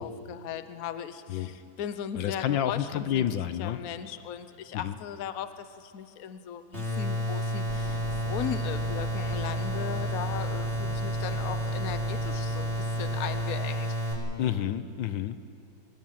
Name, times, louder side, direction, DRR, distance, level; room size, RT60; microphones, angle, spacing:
voice 1, 0.0-3.2 3.6-14.0, left 9 dB, 55° left, 11 dB, 1.2 m, -38 dB
voice 2, 2.1-3.8 4.7-4.9 14.4-15.4, left 10 dB, 80° left, 12 dB, 1.6 m, -29 dB
sound 1, 6.7-14.1, right 1 dB, 35° right, 5.2 m, -30 dB
sound 2, 7.7-13.4, right 1 dB, 5° right, 1.5 m, -43 dB
24.5 x 20.5 x 7.5 m, 2.5 s
omnidirectional pair, 2.0 m